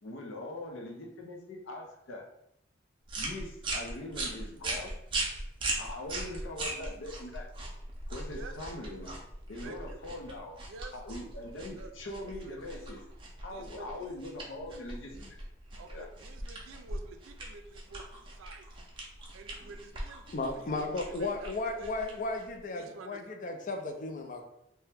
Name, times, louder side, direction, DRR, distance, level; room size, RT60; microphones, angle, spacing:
voice 1, 0.0-2.3 3.2-4.9 5.8-7.5 8.1-9.2 9.5-10.6 10.9-13.0 13.4-15.4 15.9-16.1, left 1 dB, 85° left, 1 dB, 0.6 m, -42 dB
sound 1, 3.1-22.6, right 2 dB, 25° right, 0.5 m, -40 dB
voice 2, 8.3-8.6 9.6-10.0 10.7-11.0 11.8-13.0 13.4-14.2 14.5-14.8 15.8-18.7 19.3-20.2 20.5-21.5 21.8-21.9 22.7-23.2, right 4 dB, 90° right, 6 dB, 0.4 m, -49 dB
voice 3, 20.3-24.4, left 2 dB, 40° left, 4 dB, 0.4 m, -35 dB
2.8 x 2.2 x 3.3 m, 0.80 s
head